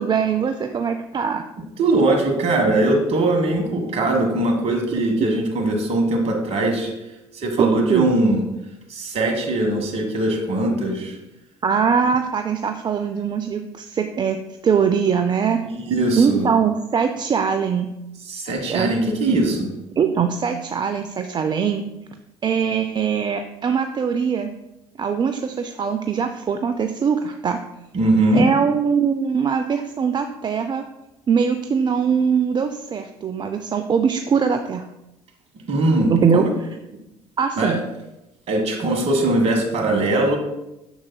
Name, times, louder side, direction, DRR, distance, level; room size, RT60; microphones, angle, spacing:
voice 1, 0.0-1.5 7.6-8.1 11.6-15.6 16.2-17.9 18.7-18.9 20.0-21.8 22.4-24.5 25.0-27.6 28.3-30.8 31.3-34.9 36.1-36.5 37.4-37.8, right 6 dB, 35° right, 7 dB, 0.4 m, -21 dB
voice 2, 1.8-6.9 7.3-8.4 8.9-11.2 15.8-16.5 18.3-19.7 27.9-28.4 35.7-36.5 37.6-37.8 38.5-40.4, right 2 dB, 50° right, 3 dB, 1.6 m, -20 dB
7.0 x 6.4 x 2.3 m, 0.92 s
hypercardioid pair, 60°, 14 cm